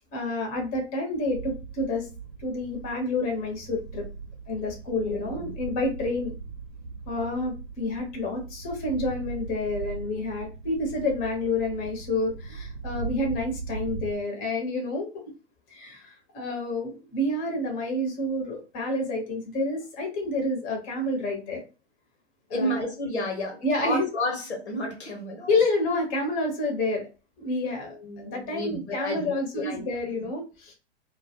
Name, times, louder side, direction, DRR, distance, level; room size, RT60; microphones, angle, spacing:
voice 1, 0.1-2.1 2.4-4.1 4.5-6.3 7.1-15.1 15.7-21.6 22.5-22.8 23.6-24.0 25.5-27.1 27.4-30.7, left 2 dB, 25° left, 2 dB, 0.9 m, -29 dB
sound 1, 1.3-14.1, right 5 dB, 75° right, 0.6 m, -39 dB
voice 2, 5.0-5.5 22.5-25.5 27.8-29.9, left 1 dB, 80° left, 3 dB, 1.0 m, -31 dB
2.2 x 2.1 x 2.8 m, 0.31 s
figure-of-eight pair, 105°, 34 cm